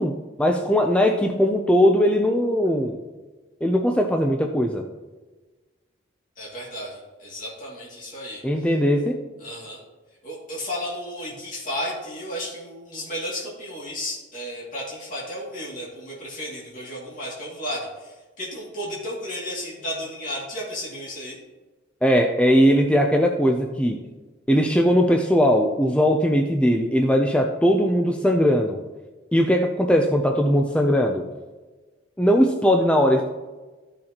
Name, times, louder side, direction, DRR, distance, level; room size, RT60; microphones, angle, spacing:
voice 1, 0.0-3.0 3.6-4.8 8.4-9.2 22.0-24.0 24.5-28.8 29.3-31.2 32.2-33.2, equal, 5° left, 3 dB, 0.5 m, -19 dB
voice 2, 6.4-8.4 9.4-9.8 10.2-21.4, equal, 45° left, -6 dB, 2.5 m, -33 dB
14.0 x 6.4 x 2.9 m, 1.2 s
head